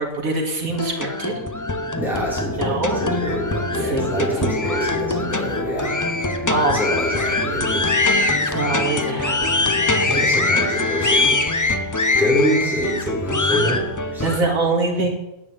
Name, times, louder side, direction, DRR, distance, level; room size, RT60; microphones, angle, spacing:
voice 1, 0.0-1.3 2.6-3.0 3.7-4.9 5.4-5.5 6.5-6.8 8.4-10.3 14.2-15.1, right 3 dB, 75° right, 2 dB, 2.6 m, -25 dB
sound 1, 0.7-14.4, left 2 dB, 20° left, 0.5 m, -22 dB
voice 2, 2.0-5.9 6.7-8.0 10.0-11.4 12.2-14.2, equal, ahead, -6 dB, 5.8 m, -26 dB
10.0 x 8.8 x 9.0 m, 0.90 s
omnidirectional pair, 1.5 m